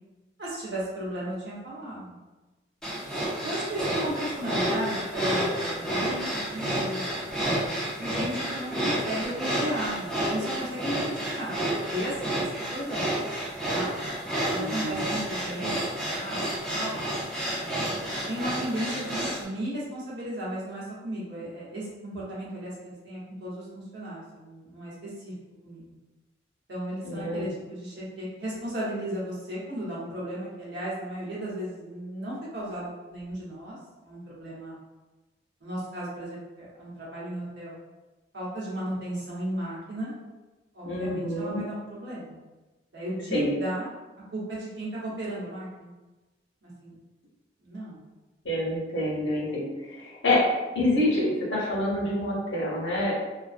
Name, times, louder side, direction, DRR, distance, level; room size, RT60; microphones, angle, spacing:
voice 1, 0.4-2.2 2.9-3.1 3.4-7.3 8.0-13.1 13.7-13.9 14.5-17.0 17.5-25.3 25.6-25.9 26.7-33.8 34.0-34.8 35.6-37.7 38.3-40.1 40.7-42.4 42.9-43.9 44.3-45.9 46.6-46.9 47.6-48.0, right 1 dB, 65° right, -8 dB, 1.0 m, -35 dB
sound 1, 2.8-19.4, right 1 dB, 5° left, 0.4 m, -30 dB
voice 2, 14.5-15.0 27.0-27.5 40.8-41.6 43.3-43.5 48.4-50.4 50.7-53.1, left 1 dB, 80° left, -5 dB, 0.8 m, -27 dB
2.5 x 2.2 x 2.4 m, 1.2 s
head